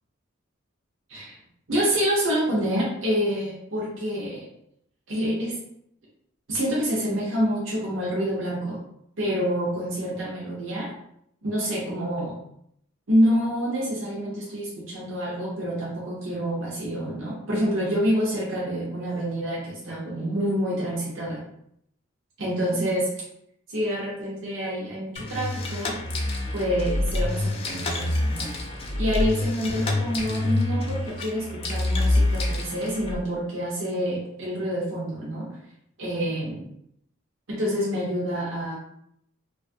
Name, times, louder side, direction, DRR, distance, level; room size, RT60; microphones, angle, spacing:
voice 1, 1.7-4.5 5.1-5.6 6.5-8.8 9.2-10.9 11.4-12.3 13.1-21.4 22.4-23.1 23.7-26.0 26.5-28.5 29.0-35.5 36.0-36.6 37.5-38.8, equal, 70° right, -5 dB, 0.7 m, -27 dB
sound 1, 25.2-33.2, left 1 dB, 30° left, 0.3 m, -26 dB
2.6 x 2.3 x 2.6 m, 0.74 s
head